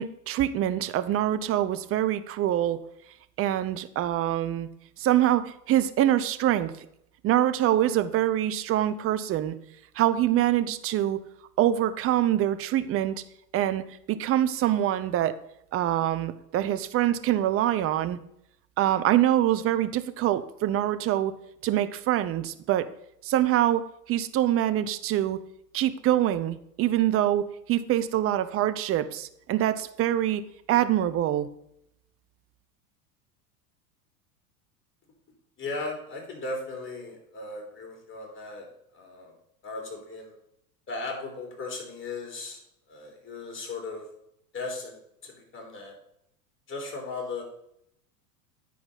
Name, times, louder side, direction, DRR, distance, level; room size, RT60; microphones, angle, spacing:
voice 1, 0.0-2.8 3.4-4.7 5.0-6.9 7.2-9.5 10.0-11.2 11.6-13.2 13.5-15.3 15.7-18.2 18.8-21.3 21.6-22.9 23.2-25.4 25.7-30.4 30.7-31.5, right 12 dB, 30° right, 11 dB, 0.6 m, -25 dB
voice 2, 35.6-38.7 38.9-39.3 39.6-40.4 40.9-42.6 42.9-44.1 44.5-45.9 46.7-47.4, left 3 dB, 25° left, 1 dB, 3.6 m, -37 dB
10.0 x 4.6 x 5.4 m, 0.76 s
hypercardioid pair, 90°, 46 cm